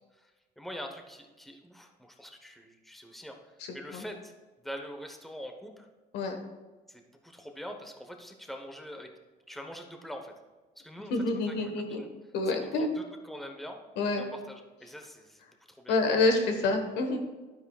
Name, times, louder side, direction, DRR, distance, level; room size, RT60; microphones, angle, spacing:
voice 1, 0.6-4.3 4.6-5.9 6.9-9.1 9.5-10.3 10.8-11.1 11.5-12.1 12.5-13.8 14.2-15.4 15.7-16.0, equal, ahead, 4 dB, 1.0 m, -44 dB
voice 2, 3.6-4.0 6.1-6.3 11.1-12.0 12.3-12.9 14.0-14.2 15.9-17.2, left 3 dB, 85° left, 5 dB, 1.4 m, -27 dB
11.0 x 9.8 x 2.4 m, 1.3 s
cardioid pair, 110°, 17 cm